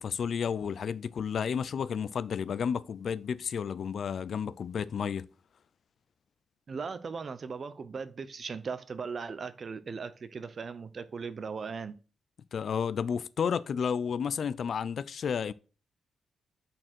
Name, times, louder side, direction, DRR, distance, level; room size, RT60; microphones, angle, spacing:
voice 1, 0.0-5.3 12.5-15.5, left 7 dB, 60° left, 0.4 m, -32 dB
voice 2, 6.7-12.0, right 5 dB, 45° right, 0.7 m, -38 dB
6.3 x 4.4 x 6.0 m
wide cardioid pair, 120°, 0 cm